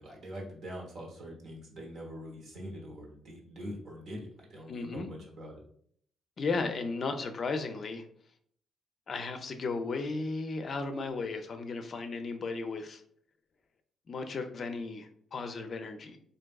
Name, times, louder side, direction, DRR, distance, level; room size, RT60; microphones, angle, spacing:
voice 1, 0.0-5.6, equal, 60° right, -2 dB, 1.1 m, -43 dB
voice 2, 4.7-5.1 6.4-8.0 9.1-13.0 14.1-16.2, left 3 dB, 50° left, 6 dB, 0.4 m, -35 dB
3.5 x 2.6 x 2.3 m, 0.63 s
cardioid pair, 90°, 0 cm